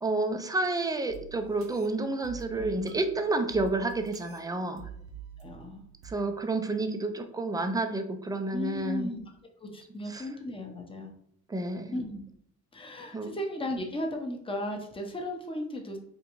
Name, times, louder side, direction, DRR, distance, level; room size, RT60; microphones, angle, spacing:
voice 1, 0.0-4.9 6.0-9.1 10.1-10.3 11.5-12.0 13.1-13.3, right 2 dB, 15° right, 6 dB, 0.4 m, -30 dB
sound 1, 1.1-6.1, right 9 dB, 50° right, 0.6 m, -47 dB
voice 2, 2.5-3.0 5.4-5.8 8.5-9.2 9.6-11.1 11.9-12.2 12.7-16.0, left 1 dB, 20° left, 3 dB, 0.7 m, -35 dB
3.7 x 2.5 x 2.9 m, 0.69 s
cardioid pair, 90°, 30 cm